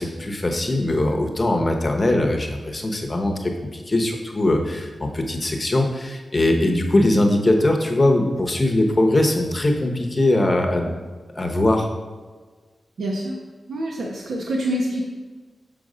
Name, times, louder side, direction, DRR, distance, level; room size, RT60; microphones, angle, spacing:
voice 1, 0.0-10.9 11.3-11.9, left 1 dB, 20° left, 2 dB, 0.8 m, -21 dB
voice 2, 13.0-13.4 13.7-15.0, right 1 dB, 75° right, -1 dB, 0.9 m, -26 dB
6.9 x 5.3 x 4.9 m, 1.4 s
wide cardioid pair, 170°, 0 cm